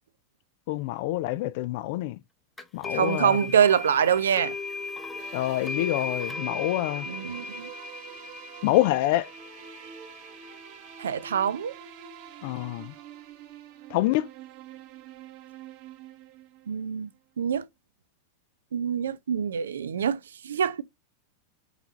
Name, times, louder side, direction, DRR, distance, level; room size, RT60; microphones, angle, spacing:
voice 1, 0.7-2.2 2.7-3.4 5.3-7.1 8.6-9.3 12.4-12.9 13.9-14.2, left 16 dB, 50° left, 0.4 m, -26 dB
sound 1, 2.6-11.4, left 4 dB, 10° left, 0.8 m, -38 dB
voice 2, 2.9-4.5 7.1-7.7 11.0-11.7 16.7-17.1 17.4-17.6 18.7-20.2 20.4-20.8, right 8 dB, 65° right, 0.4 m, -25 dB
sound 2, 5.2-17.0, right 8 dB, 45° right, 1.1 m, -46 dB
4.5 x 4.0 x 2.6 m
figure-of-eight pair, 90°, 0 cm